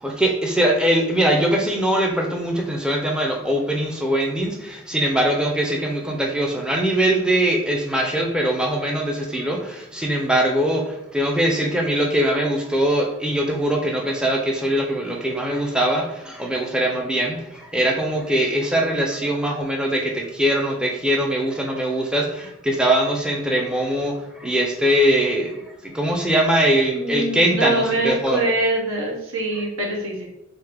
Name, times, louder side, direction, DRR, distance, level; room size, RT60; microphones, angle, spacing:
voice 1, 0.0-28.4, right 1 dB, 5° right, 0 dB, 0.4 m, -22 dB
voice 2, 26.9-30.3, right 2 dB, 85° right, -2 dB, 1.1 m, -24 dB
3.6 x 2.7 x 3.3 m, 0.88 s
head